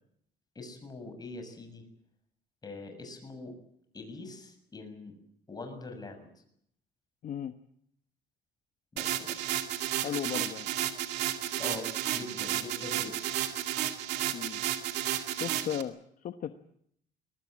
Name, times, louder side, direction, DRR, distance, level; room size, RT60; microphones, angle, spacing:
voice 1, 0.6-1.9 2.6-3.5 3.9-5.2 5.5-6.4 8.9-9.4 11.6-13.2, left 2 dB, 25° left, 6 dB, 6.9 m, -43 dB
voice 2, 7.2-7.5 10.0-10.7 14.3-14.6 15.4-16.6, left 9 dB, 50° left, 9 dB, 1.1 m, -36 dB
sound 1, 9.0-15.8, right 12 dB, 85° right, 2.2 m, -32 dB
22.5 x 19.0 x 8.8 m, 0.69 s
cardioid pair, 110°, 17 cm